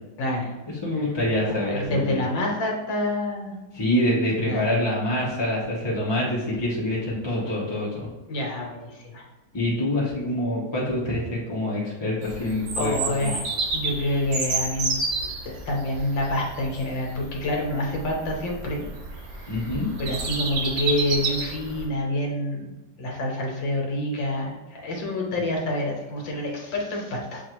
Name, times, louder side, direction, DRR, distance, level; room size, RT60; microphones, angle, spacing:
voice 1, 0.2-0.5 1.6-3.5 4.5-4.7 8.3-9.2 12.8-15.0 15.4-18.8 19.4-19.5 20.0-22.7 23.0-27.4, left 1 dB, 90° left, -1 dB, 1.8 m, -27 dB
voice 2, 0.8-2.3 3.7-8.1 9.5-13.3 19.5-19.9, left 1 dB, 25° left, -6 dB, 0.5 m, -26 dB
Bird vocalization bird call bird song, 12.2-21.9, right 3 dB, 80° right, 1.6 m, -30 dB
7.1 x 2.5 x 3.0 m, 1.1 s
omnidirectional pair, 2.0 m